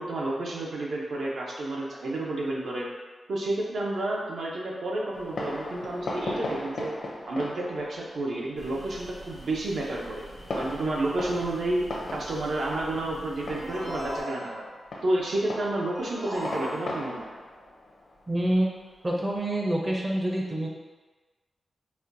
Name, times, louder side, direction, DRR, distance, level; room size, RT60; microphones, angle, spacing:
voice 1, 0.0-2.9 3.3-6.9 7.3-10.2 10.6-11.8 12.1-14.6 15.0-17.3, right 2 dB, 70° right, -3 dB, 0.6 m, -30 dB
Fireworks, 5.1-19.3, left 2 dB, 65° left, 0.5 m, -39 dB
sound 1, 8.6-14.2, right 1 dB, 90° right, 1.2 m, -46 dB
sound 2, 13.5-14.9 15.9-17.3, equal, 50° right, 1.2 m, -37 dB
voice 2, 18.3-18.7 19.0-20.7, right 1 dB, 20° right, -2 dB, 0.5 m, -26 dB
4.2 x 2.2 x 2.5 m, 1.3 s
wide cardioid pair, 160°, 0 cm